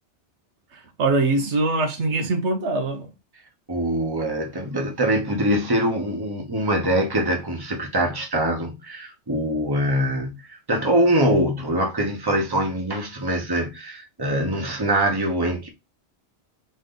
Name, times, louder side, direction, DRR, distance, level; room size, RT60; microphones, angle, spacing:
voice 1, 0.7-3.1, right 2 dB, 85° right, 1.3 m, -23 dB
voice 2, 3.7-15.7, right 1 dB, 20° right, 1.1 m, -23 dB
3.9 x 3.3 x 3.8 m
omnidirectional pair, 1.1 m